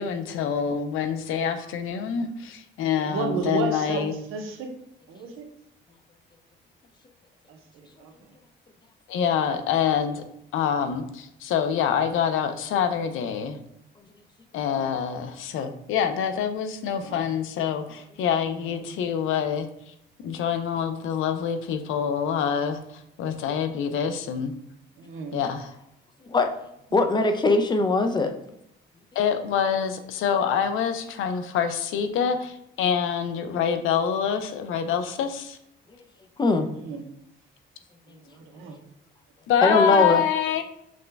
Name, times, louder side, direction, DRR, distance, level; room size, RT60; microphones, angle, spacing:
voice 1, 0.0-4.1 9.1-10.2 10.5-13.6 14.5-19.7 20.2-22.8 23.2-24.5 25.3-25.7 29.2-35.6 39.5-40.6, left 8 dB, 80° left, 8 dB, 0.6 m, -26 dB
voice 2, 3.0-4.7 5.1-5.4 7.5-7.6 8.0-8.1 17.0-17.2 18.6-18.8 25.0-25.4 36.8-37.0 38.3-38.8, right 4 dB, 85° right, 3 dB, 0.8 m, -32 dB
voice 3, 26.9-28.3 36.4-36.7 39.6-40.2, left 3 dB, 20° left, 6 dB, 0.5 m, -20 dB
6.2 x 2.2 x 3.3 m, 0.79 s
cardioid pair, 125°, 21 cm